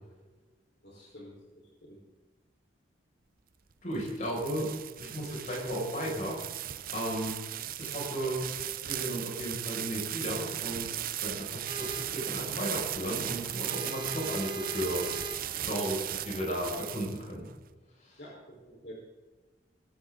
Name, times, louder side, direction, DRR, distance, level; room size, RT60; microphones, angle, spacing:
voice 1, 0.8-1.3 1.8-2.0 18.2-18.9, equal, 65° left, -4 dB, 4.7 m, -48 dB
sound 1, 3.7-17.5, right 12 dB, 50° right, 0.6 m, -37 dB
voice 2, 3.8-7.4 7.8-8.5 8.8-15.2 15.6-17.5 18.0-18.2, equal, 45° left, -2 dB, 6.4 m, -35 dB
sound 2, 11.7-16.9, right 2 dB, 25° right, 1.1 m, -42 dB
21.5 x 13.0 x 4.0 m, 1.3 s
head